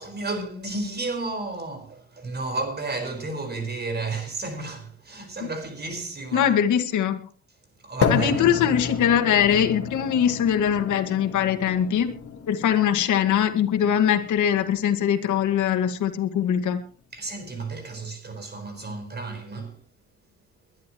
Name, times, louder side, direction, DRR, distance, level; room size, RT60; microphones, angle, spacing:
voice 1, 0.0-6.6 7.8-8.4 17.1-19.8, right 3 dB, 35° right, 5.0 m, -32 dB
voice 2, 6.3-7.2 8.1-12.1 12.5-16.8, left 9 dB, 80° left, 2.0 m, -22 dB
sound 1, 8.0-16.0, left 6 dB, 50° left, 2.0 m, -32 dB
23.0 x 11.5 x 3.1 m
cardioid pair, 90°, 30 cm